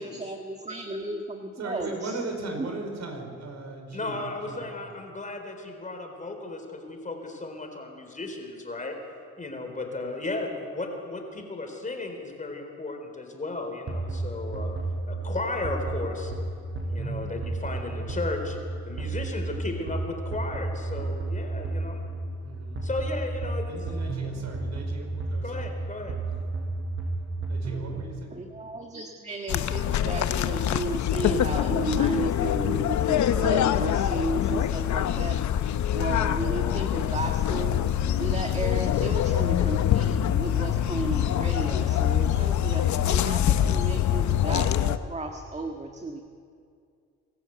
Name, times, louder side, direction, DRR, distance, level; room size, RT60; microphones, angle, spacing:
voice 1, 0.0-2.2 2.6-2.7 28.3-35.4 35.9-37.8 38.2-46.2, right 2 dB, 20° right, 3 dB, 1.7 m, -34 dB
voice 2, 1.6-4.7 22.4-22.8 23.7-25.7 27.5-28.3, right 2 dB, 60° right, 3 dB, 5.1 m, -38 dB
voice 3, 3.9-9.0 9.4-14.8 15.0-16.3 16.8-18.6 18.8-22.0 22.8-23.7 25.4-26.2 42.1-42.4, left 2 dB, 25° left, 4 dB, 4.0 m, -35 dB
sound 1, 13.9-28.1, right 2 dB, 40° right, 6.3 m, -32 dB
sound 2, 29.5-45.0, left 10 dB, 70° left, 0.9 m, -24 dB
25.0 x 14.0 x 8.2 m, 2.3 s
cardioid pair, 90°, 30 cm